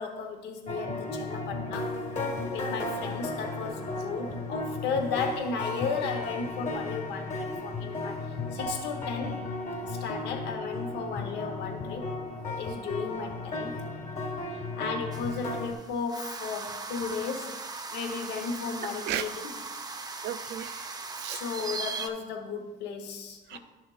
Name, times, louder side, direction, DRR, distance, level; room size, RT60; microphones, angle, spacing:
voice 1, 0.0-1.9 2.5-8.2 8.5-9.5 9.9-12.1 12.4-13.8 14.8-17.5 17.9-19.3 21.3-23.6, left 5 dB, 85° left, 4 dB, 1.0 m, -34 dB
sound 1, 0.7-15.7, left 2 dB, 45° left, 1.5 m, -34 dB
voice 2, 2.6-2.9 18.8-19.3 20.2-21.4 23.5-23.6, right 12 dB, 80° right, 11 dB, 0.5 m, -36 dB
sound 2, 15.1-22.1, right 4 dB, 25° right, 0.7 m, -39 dB
11.0 x 6.4 x 2.4 m, 1.2 s
cardioid pair, 110°, 17 cm